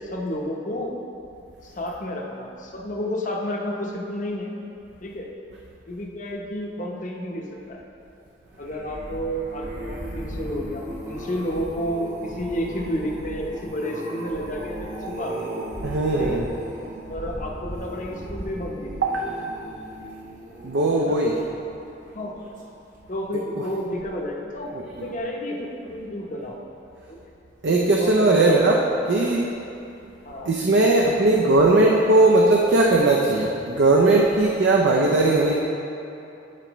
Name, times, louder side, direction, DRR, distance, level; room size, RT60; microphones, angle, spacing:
voice 1, 0.1-0.9 1.6-4.5 5.0-5.3 5.9-7.8 8.6-15.5 16.2-16.4 17.1-19.1 21.0-21.2 22.0-22.3 23.1-26.6 27.1-27.3 28.0-29.0 30.2-30.5, equal, 40° left, -1 dB, 0.8 m, -31 dB
sound 1, 8.5-21.8 22.4-22.7 22.9-23.0, right 1 dB, 45° right, 1.1 m, -36 dB
voice 2, 15.8-16.4 19.0-19.5 20.6-21.4 24.7-25.1 27.6-28.8 29.1-29.6 30.5-35.6, right 2 dB, 65° right, -1 dB, 0.5 m, -19 dB
11.5 x 4.4 x 3.1 m, 2.8 s
head